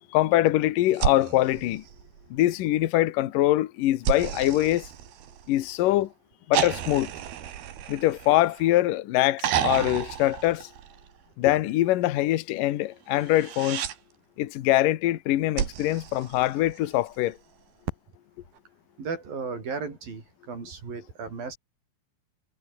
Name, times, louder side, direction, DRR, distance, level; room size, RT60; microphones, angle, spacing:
voice 1, 0.1-1.8 2.3-4.9 5.5-6.1 6.5-7.1 7.9-10.7 11.4-13.8 14.4-17.4, left 15 dB, 70° left, 2.7 m, -23 dB
sound 1, 0.9-2.5 4.0-5.7 6.5-8.8 9.4-11.2 13.2-14.0 15.6-17.0 18.6-18.7, right 10 dB, 85° right, 4.0 m, -32 dB
voice 2, 19.0-21.6, right 5 dB, 70° right, 7.8 m, -35 dB
omnidirectional pair, 4.3 m